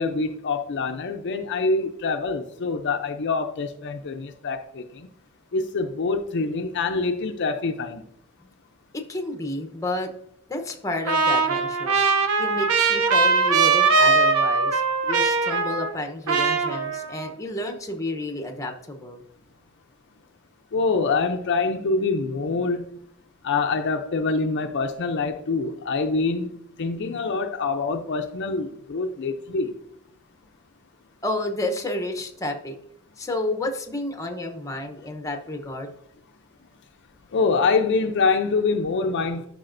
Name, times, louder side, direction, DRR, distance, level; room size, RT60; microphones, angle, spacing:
voice 1, 0.0-5.1 5.5-8.0 20.7-22.9 23.4-29.7 37.3-39.5, left 4 dB, 55° left, 0.5 m, -25 dB
voice 2, 8.9-10.1 10.5-12.0 12.4-19.2 31.2-32.8 33.2-35.9, left 1 dB, 15° left, 0.8 m, -31 dB
Trumpet, 11.1-16.0 16.3-17.3, right 4 dB, 80° right, 0.7 m, -21 dB
11.5 x 4.9 x 2.6 m
head